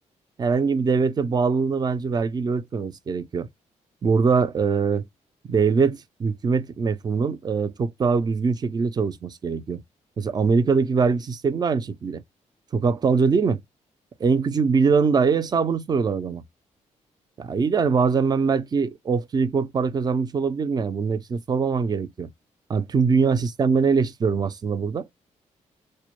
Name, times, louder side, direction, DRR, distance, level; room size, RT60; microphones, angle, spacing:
voice 1, 0.4-3.5 4.0-5.0 5.5-9.8 10.2-12.2 12.7-13.6 14.2-16.4 17.4-22.3 22.7-25.1, right 5 dB, 35° right, 0.4 m, -22 dB
2.1 x 2.1 x 2.9 m
cardioid pair, 90°, 13 cm